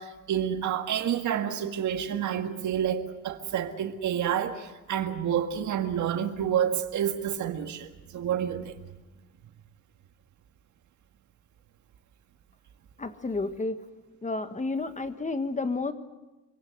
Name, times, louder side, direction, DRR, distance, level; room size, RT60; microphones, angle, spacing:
voice 1, 0.0-8.8, right 9 dB, 75° right, 1.9 m, -29 dB
voice 2, 13.0-13.9 14.2-15.9, left 3 dB, 25° left, 1.5 m, -31 dB
25.0 x 17.5 x 7.9 m
cardioid pair, 90°, 30 cm